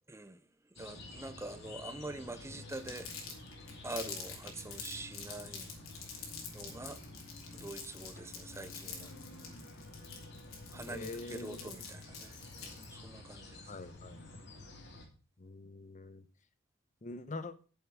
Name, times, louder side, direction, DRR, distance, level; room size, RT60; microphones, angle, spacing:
voice 1, 0.1-0.4 0.8-3.3 3.8-5.7 6.5-7.0 7.5-9.1 10.7-13.7, right 2 dB, 15° right, 0.7 m, -45 dB
sound 1, 0.8-15.1, left 2 dB, 55° left, 2.7 m, -50 dB
Crumpling crinkling, 2.7-12.9, left 6 dB, 90° left, 3.2 m, -46 dB
voice 2, 10.9-11.7 13.7-14.3 15.4-16.2 17.0-17.5, left 2 dB, 35° left, 0.7 m, -44 dB
9.1 x 7.2 x 6.0 m
head